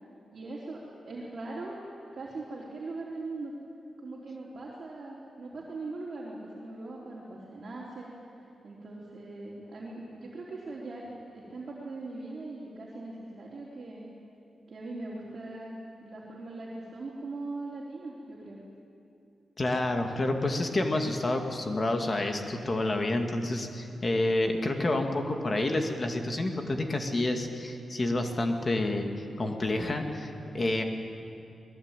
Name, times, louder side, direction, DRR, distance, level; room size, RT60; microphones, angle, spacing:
voice 1, 0.3-1.8 2.1-3.5 4.0-8.1 8.6-11.1 11.3-14.1 14.7-18.6, right 2 dB, 40° right, -5 dB, 3.9 m, -40 dB
voice 2, 19.6-29.1 29.4-30.3 30.5-30.8, left 2 dB, 30° left, 4 dB, 2.2 m, -29 dB
27.5 x 20.5 x 9.1 m, 2.6 s
wide cardioid pair, 160°, 0 cm